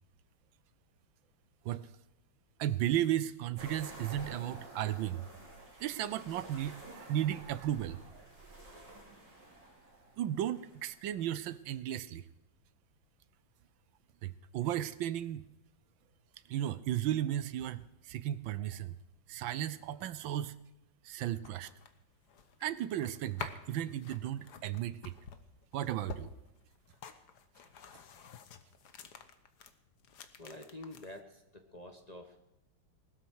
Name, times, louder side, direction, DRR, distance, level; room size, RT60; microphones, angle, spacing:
voice 1, 2.6-5.3 5.8-8.2 10.2-12.2 14.2-15.4 16.5-19.0 19.3-20.6 21.0-21.7 22.6-25.1 25.7-26.3, right 12 dB, 80° right, 16 dB, 1.4 m, -35 dB
sound 1, 3.6-11.2, right 2 dB, 60° right, 5.9 m, -51 dB
sound 2, 21.2-29.7 30.0-31.2, left 7 dB, 60° left, 1.5 m, -49 dB
voice 2, 30.4-32.4, left 1 dB, 25° left, 4 dB, 1.0 m, -48 dB
20.0 x 13.0 x 4.7 m, 0.91 s
omnidirectional pair, 2.2 m